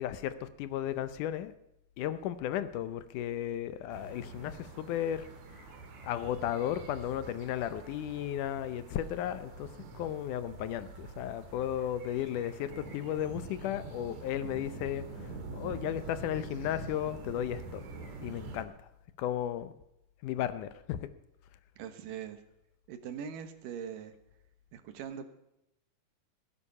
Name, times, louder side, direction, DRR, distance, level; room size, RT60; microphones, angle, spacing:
voice 1, 0.0-1.5 2.0-5.3 6.0-9.7 10.0-15.0 15.5-17.8 18.2-18.9 19.2-19.7 20.2-21.1, left 11 dB, 75° left, 12 dB, 2.2 m, -34 dB
sound 1, 3.9-18.6, right 3 dB, 65° right, 2.8 m, -46 dB
voice 2, 21.8-22.4 22.9-24.1 24.7-25.2, right 8 dB, 80° right, 9 dB, 2.9 m, -41 dB
17.0 x 10.0 x 5.5 m, 0.83 s
omnidirectional pair, 3.8 m